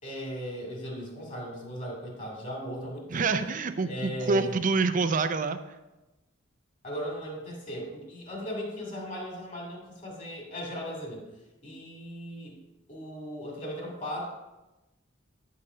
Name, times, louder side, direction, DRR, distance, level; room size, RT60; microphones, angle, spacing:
voice 1, 0.0-3.3 3.8-4.6 6.8-11.3 11.6-12.6 12.9-14.3, equal, 40° left, -1 dB, 2.3 m, -37 dB
voice 2, 3.1-5.6, right 4 dB, 40° right, 10 dB, 0.5 m, -26 dB
8.8 x 4.2 x 4.9 m, 1.0 s
head